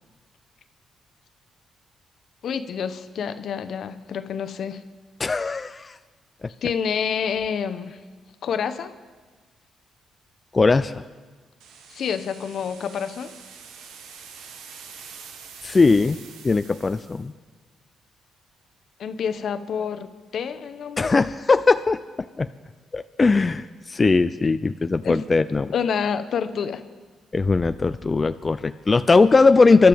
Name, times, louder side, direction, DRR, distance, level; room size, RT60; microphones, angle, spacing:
voice 1, 2.4-4.8 6.6-8.0 8.4-8.9 11.9-13.3 19.0-21.1 25.0-25.2 25.7-26.8, left 7 dB, 65° left, 10 dB, 0.9 m, -28 dB
voice 2, 5.2-6.0 6.4-6.5 10.5-11.0 15.6-17.3 21.0-22.0 22.4-22.5 22.9-25.7 27.3-29.9, left 3 dB, 35° left, 10 dB, 0.4 m, -19 dB
sound 1, 11.6-17.3, right 6 dB, 85° right, 1.1 m, -45 dB
24.0 x 12.0 x 3.6 m, 1.4 s
supercardioid pair, 60°, 0 cm